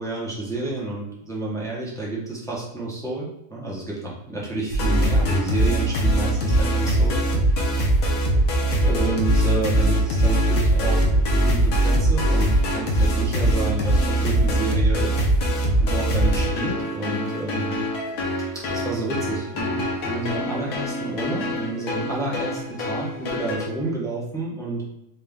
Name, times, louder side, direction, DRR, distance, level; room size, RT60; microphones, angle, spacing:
voice 1, 0.0-7.2 8.8-15.2 15.8-17.8 18.5-24.8, right 2 dB, 5° left, -5 dB, 0.5 m, -30 dB
sound 1, 4.7-23.7, right 1 dB, 60° left, 1.2 m, -22 dB
4.2 x 2.5 x 3.5 m, 0.87 s
omnidirectional pair, 1.8 m